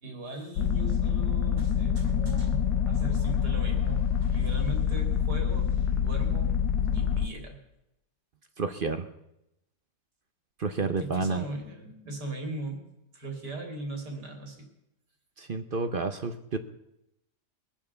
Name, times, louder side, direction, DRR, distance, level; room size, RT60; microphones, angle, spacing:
voice 1, 0.0-6.5 6.8-7.6 11.0-12.8 13.1-14.7, right 2 dB, 70° right, 3 dB, 3.3 m, -39 dB
sound 1, 0.6-7.3, left 8 dB, 85° left, 1.4 m, -26 dB
voice 2, 8.6-9.1 10.6-11.4 15.4-16.6, right 4 dB, 45° right, 9 dB, 0.7 m, -30 dB
22.0 x 7.4 x 6.9 m, 0.85 s
omnidirectional pair, 1.9 m